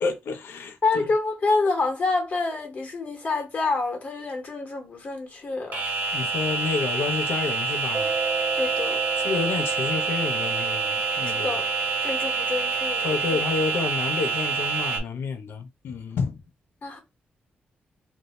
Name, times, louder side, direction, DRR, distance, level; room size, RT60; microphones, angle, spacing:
voice 1, 0.0-1.1 6.1-8.1 9.2-11.6 13.0-16.4, left 4 dB, 85° left, 0.5 m, -29 dB
voice 2, 0.8-5.8 8.5-9.0 11.3-11.7 12.0-13.4 16.8-17.0, left 3 dB, 50° left, 1.0 m, -27 dB
sound 1, 5.7-15.0, right 4 dB, 65° right, 1.1 m, -27 dB
Mallet percussion, 7.9-14.3, right 5 dB, 25° right, 0.8 m, -34 dB
2.6 x 2.0 x 3.9 m
wide cardioid pair, 120°, 4 cm